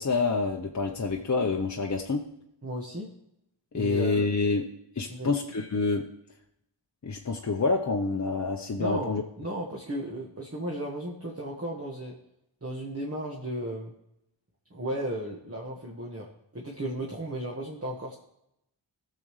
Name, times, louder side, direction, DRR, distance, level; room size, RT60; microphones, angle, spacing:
voice 1, 0.0-2.2 3.7-4.7 5.0-6.1 7.0-9.2, left 3 dB, 40° left, 1 dB, 0.8 m, -27 dB
voice 2, 2.6-3.1 3.7-4.3 5.1-5.3 8.8-12.1 12.6-13.9 14.7-16.3 16.5-18.1, right 1 dB, 30° right, -2 dB, 1.5 m, -35 dB
17.5 x 6.8 x 3.2 m, 0.81 s
wide cardioid pair, 80°, 44 cm